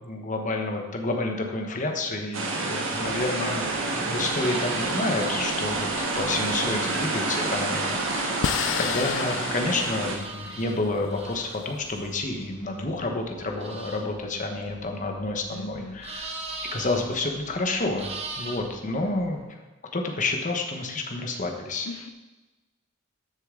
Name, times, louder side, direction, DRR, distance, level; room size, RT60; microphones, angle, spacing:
voice 1, 0.0-8.3 8.8-16.3 16.7-18.1 18.4-19.6 19.9-21.9, left 2 dB, 35° left, 3 dB, 1.2 m, -29 dB
sound 1, 2.3-10.1, right 3 dB, 60° right, 1.6 m, -28 dB
sound 2, 2.9-19.4, right 3 dB, 30° right, 1.1 m, -43 dB
voice 2, 6.5-7.0 10.4-10.6 15.5-16.0 21.8-22.1, left 3 dB, 85° left, 7 dB, 0.7 m, -40 dB
sound 3, 7.4-12.0, left 9 dB, 55° left, 0.4 m, -33 dB
13.5 x 6.9 x 3.8 m, 1.1 s
head